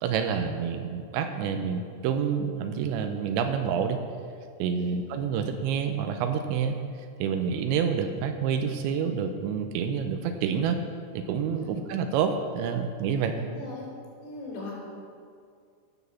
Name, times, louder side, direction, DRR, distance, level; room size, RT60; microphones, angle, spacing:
voice 1, 0.0-4.0 4.6-6.8 7.2-10.8 11.2-13.4, right 7 dB, 85° right, 6 dB, 2.8 m, -28 dB
voice 2, 13.4-13.9 14.2-14.7, left 2 dB, 75° left, -5 dB, 5.9 m, -40 dB
14.5 x 6.2 x 7.0 m, 2.2 s
omnidirectional pair, 5.5 m